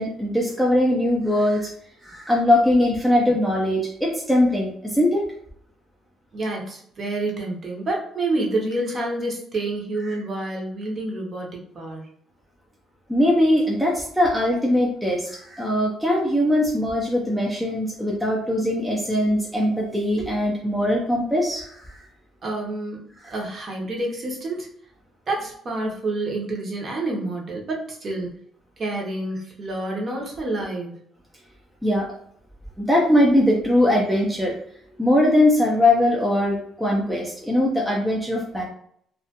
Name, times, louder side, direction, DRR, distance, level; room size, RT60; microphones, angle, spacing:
voice 1, 0.0-1.7 2.0-5.2 10.1-10.2 13.1-22.0 23.2-23.3 31.8-32.1 32.8-34.6 35.0-38.6, left 1 dB, ahead, -3 dB, 0.4 m, -21 dB
voice 2, 6.3-12.1 22.4-23.0 23.3-24.7 25.3-28.3 28.8-31.0, right 2 dB, 35° right, -1 dB, 0.7 m, -28 dB
2.3 x 2.1 x 2.8 m, 0.65 s
cardioid pair, 145°, 0 cm